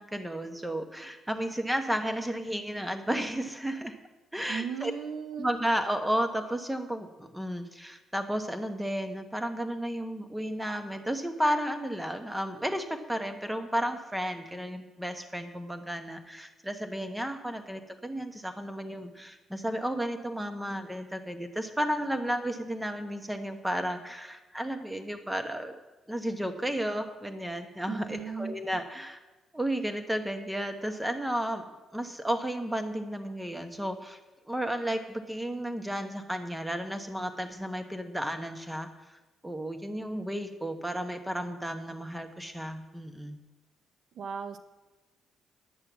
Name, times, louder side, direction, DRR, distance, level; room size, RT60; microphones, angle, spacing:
voice 1, 0.0-4.0 4.3-4.9 5.4-25.8 26.1-29.2 29.5-31.6 31.9-34.2 34.5-43.4, equal, 5° right, 7 dB, 1.1 m, -33 dB
voice 2, 4.5-5.5 27.9-28.6 44.2-44.6, right 6 dB, 65° right, 8 dB, 0.8 m, -36 dB
10.5 x 6.4 x 7.2 m, 1.1 s
cardioid pair, 90°, 0 cm